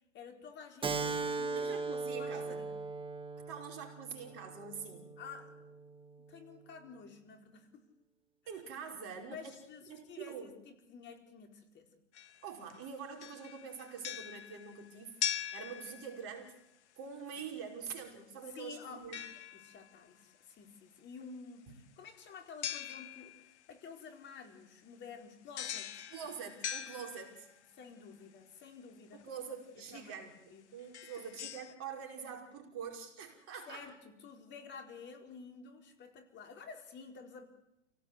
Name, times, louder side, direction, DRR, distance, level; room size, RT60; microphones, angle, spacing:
voice 1, 0.1-2.7 5.2-5.8 6.3-7.9 8.4-8.6 9.3-11.9 18.5-19.0 19.5-26.0 27.7-29.2 29.9-30.1 30.5-30.6 33.7-37.5, left 5 dB, 30° left, 4 dB, 4.4 m, -51 dB
Keyboard (musical), 0.8-5.9, right 4 dB, 15° right, 1.7 m, -39 dB
voice 2, 1.5-2.6 3.5-5.1 8.5-9.6 9.9-10.5 12.4-16.5 17.0-19.2 21.7-21.8 26.1-27.5 29.1-33.8, right 6 dB, 35° right, 4 dB, 5.4 m, -45 dB
sound 1, 12.1-12.8 13.2-16.5 19.1-20.0 22.6-23.6 25.6-27.7 29.2-29.3 30.0-30.1 30.8-31.7, left 10 dB, 65° left, 1.6 m, -42 dB
29.5 x 18.0 x 8.1 m, 0.87 s
hypercardioid pair, 110°, 37 cm